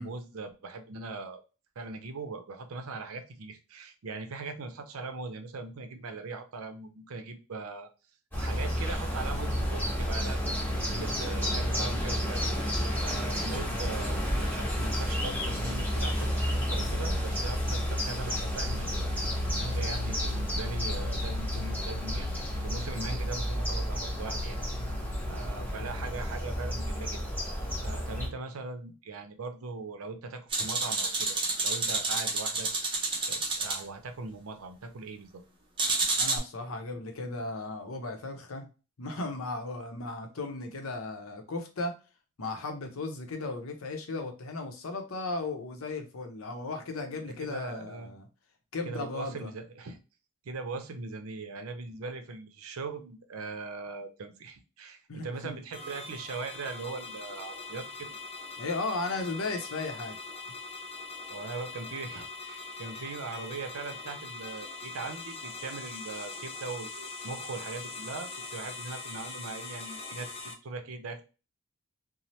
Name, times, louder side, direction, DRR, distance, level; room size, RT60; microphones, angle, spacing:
voice 1, 0.0-1.4 1.8-7.9 8.4-10.4 10.8-19.0 19.5-24.6 24.9-27.2 27.8-32.7 33.3-35.4 47.4-48.1 48.9-50.0 50.4-58.2 61.3-71.2, right 3 dB, 85° right, 7 dB, 0.5 m, -40 dB
sound 1, 8.3-28.3, equal, 10° left, 1.2 m, -31 dB
sound 2, 30.5-33.8 35.8-36.4, right 3 dB, 25° right, 0.6 m, -29 dB
voice 2, 36.2-38.7 39.0-41.9 42.4-48.3 48.7-49.5 55.1-55.5 58.6-60.2, left 3 dB, 80° left, 5 dB, 0.7 m, -36 dB
sound 3, 55.7-70.5, left 3 dB, 25° left, 0.4 m, -42 dB
2.8 x 2.0 x 3.0 m, 0.32 s
head